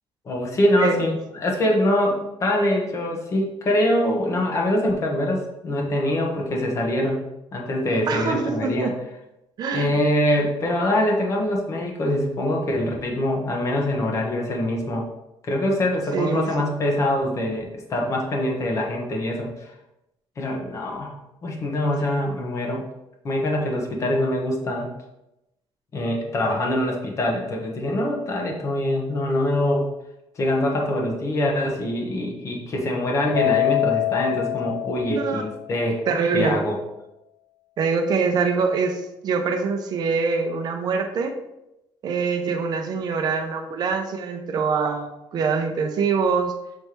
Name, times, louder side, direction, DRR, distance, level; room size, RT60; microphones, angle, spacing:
voice 1, 0.2-7.2 7.5-8.9 9.7-15.1 15.4-19.7 20.4-21.1 21.4-22.8 23.2-24.9 25.9-29.9 30.3-36.0 36.3-36.8, left 1 dB, 35° left, 0 dB, 1.3 m, -24 dB
voice 2, 8.1-8.9 9.6-10.0 16.1-16.7 35.1-35.4 36.1-36.6 37.8-41.3 42.0-46.5, right 5 dB, 45° right, 4 dB, 0.8 m, -24 dB
Keyboard (musical), 33.3-35.8, left 19 dB, 90° left, 0.4 m, -25 dB
6.8 x 3.4 x 4.5 m, 0.90 s
cardioid pair, 145°, 9 cm